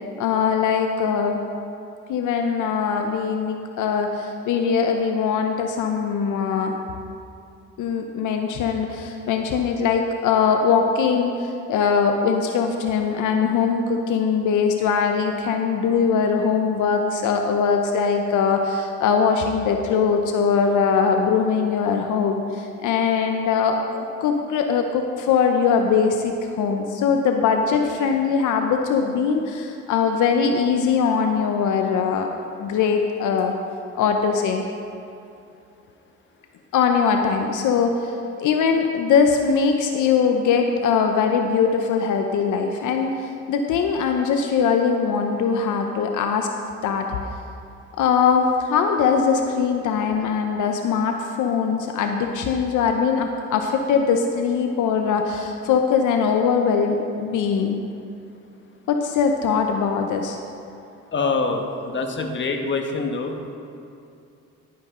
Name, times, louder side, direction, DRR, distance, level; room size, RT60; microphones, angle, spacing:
voice 1, 0.2-1.4 2.1-6.8 7.8-32.3 32.6-33.5 33.9-34.6 36.7-46.5 46.8-47.1 48.0-57.8 58.9-60.4, left 6 dB, 80° left, 4 dB, 0.8 m, -21 dB
voice 2, 61.1-63.5, left 3 dB, 40° left, 4 dB, 1.2 m, -25 dB
11.0 x 10.5 x 3.8 m, 2.6 s
cardioid pair, 90°, 30 cm